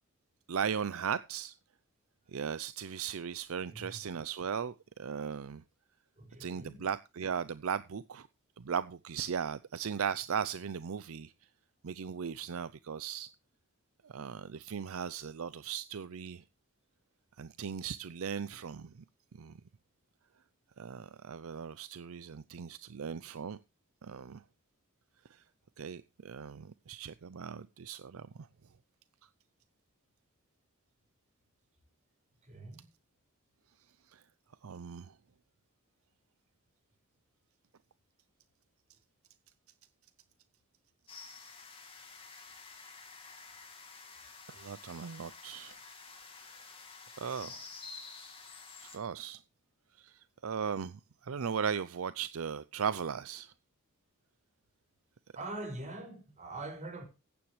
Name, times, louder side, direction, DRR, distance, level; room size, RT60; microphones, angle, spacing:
voice 1, 0.5-1.5 2.3-5.6 6.4-8.3 8.6-11.3 11.8-13.3 14.0-16.4 17.4-19.0 19.4-19.6 20.8-23.6 24.0-24.4 25.3-25.4 25.8-28.3 34.1-34.2 34.6-35.1 44.5-45.8 46.6-46.7 47.2-47.6 48.8-49.4 50.0-53.5, right 7 dB, 70° right, 0.5 m, -37 dB
voice 2, 3.7-4.0 6.2-6.8 32.4-32.9 55.3-57.0, right 2 dB, 35° right, 5.8 m, -43 dB
sound 1, 41.1-49.0, left 4 dB, 25° left, 2.8 m, -50 dB
15.0 x 10.0 x 3.2 m
head